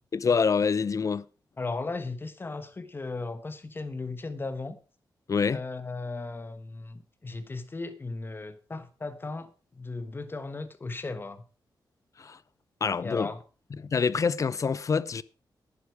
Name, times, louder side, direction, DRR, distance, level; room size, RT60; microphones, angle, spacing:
voice 1, 0.1-1.2 5.3-5.6 12.2-12.4 12.8-13.3 13.8-15.2, left 5 dB, 45° left, 0.6 m, -26 dB
voice 2, 1.6-4.8 5.5-11.4 13.0-13.4, left 3 dB, 30° left, 1.3 m, -36 dB
10.5 x 10.0 x 4.8 m
wide cardioid pair, 105°, 8 cm